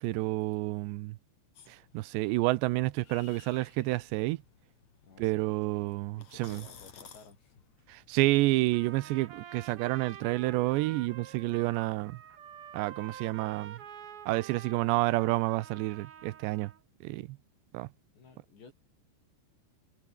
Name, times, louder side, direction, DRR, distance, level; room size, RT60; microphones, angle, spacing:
voice 1, 0.0-1.2 1.7-4.4 5.2-6.6 7.9-12.2 12.7-13.8 14.3-16.7 17.0-17.4 17.7-17.9, right 19 dB, 80° right, 2.9 m, -29 dB
sound 1, 1.5-8.3, left 7 dB, 45° left, 3.3 m, -56 dB
voice 2, 5.0-7.6 18.1-18.7, left 4 dB, 75° left, 9.5 m, -56 dB
Trumpet, 8.7-16.8, right 9 dB, 65° right, 1.4 m, -48 dB
omnidirectional pair, 5.1 m